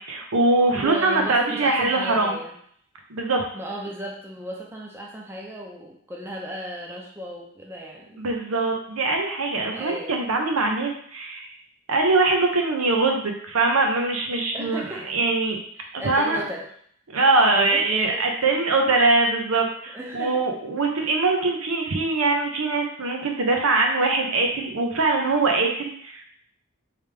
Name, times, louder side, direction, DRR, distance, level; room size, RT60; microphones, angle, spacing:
voice 1, 0.0-2.4 3.1-3.4 8.2-11.5 11.9-15.6 15.9-16.4 17.1-26.3, right 3 dB, 85° right, 2 dB, 0.7 m, -22 dB
voice 2, 0.7-2.6 3.5-8.3 9.7-10.2 14.5-15.1 16.0-16.7 17.4-18.6 19.9-20.4, equal, 10° right, -2 dB, 0.5 m, -35 dB
3.4 x 3.3 x 3.3 m, 0.62 s
head